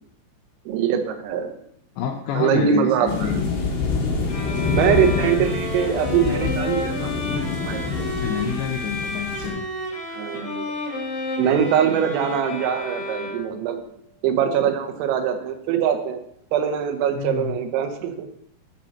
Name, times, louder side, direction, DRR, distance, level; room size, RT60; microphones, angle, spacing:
voice 1, 0.7-1.6 2.4-3.3 4.7-7.1 7.7-8.1 10.1-10.7 11.4-13.8 14.2-16.2 16.5-18.3, right 8 dB, 85° right, 6 dB, 3.6 m, -22 dB
voice 2, 2.0-3.4 8.2-9.6 17.2-17.5, left 6 dB, 85° left, 4 dB, 2.5 m, -28 dB
sound 1, 3.1-9.5, left 4 dB, 60° left, 3.7 m, -26 dB
sound 2, 4.3-13.7, left 1 dB, 25° left, 2.2 m, -31 dB
8.7 x 5.2 x 7.1 m, 0.72 s
omnidirectional pair, 5.9 m